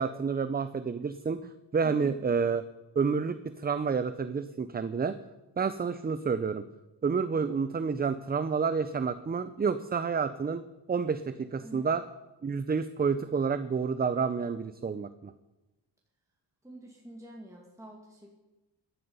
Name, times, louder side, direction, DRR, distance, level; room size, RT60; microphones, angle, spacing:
voice 1, 0.0-2.6 3.0-5.2 5.6-6.6 7.0-12.0 12.4-15.3, right 5 dB, 20° right, 12 dB, 0.5 m, -29 dB
voice 2, 1.8-2.2 11.6-11.9 16.6-18.4, right 1 dB, 5° right, -2 dB, 2.2 m, -47 dB
16.0 x 11.0 x 5.5 m, 1.1 s
cardioid pair, 110°, 43 cm